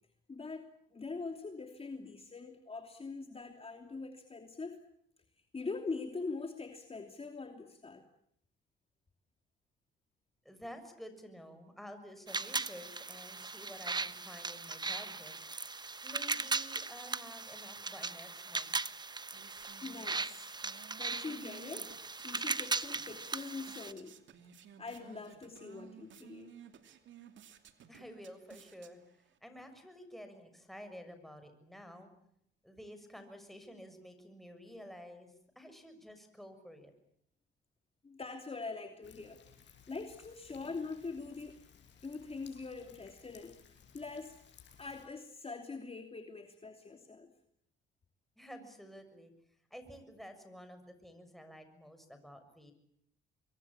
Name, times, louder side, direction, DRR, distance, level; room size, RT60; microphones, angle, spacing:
voice 1, 0.3-4.8 5.5-8.0 19.8-21.9 22.2-24.2 24.8-26.5 38.0-41.6 42.0-43.6 43.9-44.4 44.8-47.3, left 4 dB, 30° left, 5 dB, 2.9 m, -43 dB
voice 2, 10.4-15.3 16.0-18.8 27.9-32.1 32.6-36.9 48.4-49.3 49.7-52.7, equal, ahead, 7 dB, 6.7 m, -51 dB
sound 1, 12.3-23.9, right 3 dB, 20° right, 1.1 m, -38 dB
sound 2, 18.8-29.4, right 8 dB, 70° right, 2.7 m, -57 dB
Thunder, 39.0-45.1, left 7 dB, 65° left, 6.6 m, -60 dB
26.0 x 22.5 x 8.7 m, 0.70 s
cardioid pair, 90°, 20 cm